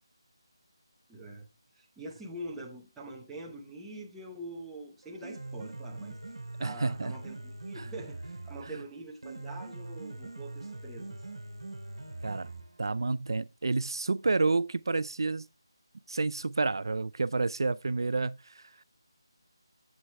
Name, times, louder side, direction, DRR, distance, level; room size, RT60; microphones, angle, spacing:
voice 1, 1.1-1.5 1.7-6.2 6.6-11.2, right 1 dB, 5° right, 0.8 m, -44 dB
Piano, 5.0-13.0, right 2 dB, 85° right, 1.2 m, -43 dB
voice 2, 6.6-7.1 7.7-7.9 8.6-8.7 12.2-12.5 12.8-15.5 16.1-18.8, right 3 dB, 60° right, 0.3 m, -30 dB
7.8 x 7.3 x 3.3 m
figure-of-eight pair, 175°, 3 cm